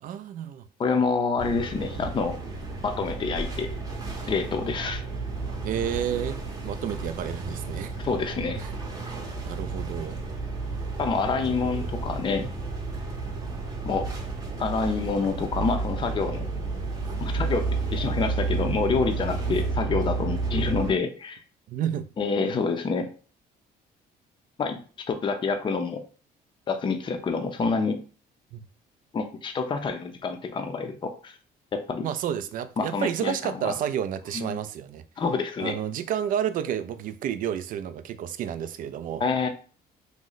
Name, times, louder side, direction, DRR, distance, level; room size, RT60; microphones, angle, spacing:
voice 1, 0.0-0.7 5.6-8.0 8.6-8.7 9.5-10.2 11.5-11.9 19.5-19.6 21.7-22.1 28.5-28.6 32.0-35.0 35.6-39.2, right 9 dB, 55° right, 0.4 m, -31 dB
voice 2, 0.8-2.4 2.8-3.8 4.3-5.0 8.0-8.6 11.0-12.5 13.9-14.1 14.6-16.5 17.2-17.6 17.9-21.4 22.2-23.1 24.6-24.8 25.1-26.0 26.7-28.0 29.1-31.3 31.7-32.1 32.8-33.7 34.3-34.6 35.2-35.8 39.2-39.5, left 4 dB, 30° left, 0.5 m, -27 dB
sound 1, 1.4-20.9, right 3 dB, 20° right, 0.8 m, -31 dB
3.0 x 2.1 x 3.8 m
cardioid pair, 110°, 17 cm